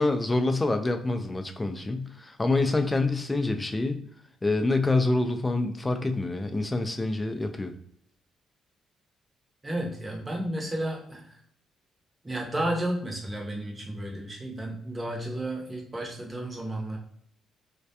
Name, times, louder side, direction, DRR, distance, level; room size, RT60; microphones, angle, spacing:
voice 1, 0.0-4.0 4.4-7.7, left 2 dB, 20° left, 6 dB, 0.3 m, -26 dB
voice 2, 9.6-11.3 12.2-17.0, right 1 dB, 20° right, 0 dB, 0.7 m, -32 dB
2.2 x 2.2 x 2.7 m, 0.65 s
cardioid pair, 90°, 0 cm